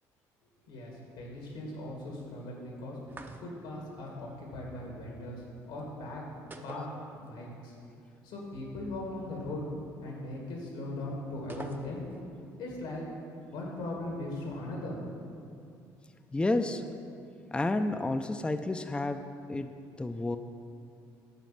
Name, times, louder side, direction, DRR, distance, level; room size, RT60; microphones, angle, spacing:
voice 1, 0.7-3.0 3.4-6.2 6.6-6.9 7.2-7.7 8.2-9.6 10.0-12.1 12.6-13.0 13.5-15.0, left 2 dB, 85° left, -2 dB, 1.9 m, -39 dB
sound 1, 3.1-3.8 6.5-7.6 7.8-7.9 11.5-12.3, right 3 dB, 25° right, 0.7 m, -46 dB
voice 2, 16.3-16.8 17.5-19.2 19.5-19.7 20.0-20.4, left 2 dB, 10° left, 8 dB, 0.4 m, -30 dB
9.2 x 4.1 x 7.3 m, 2.5 s
supercardioid pair, 70°, 9 cm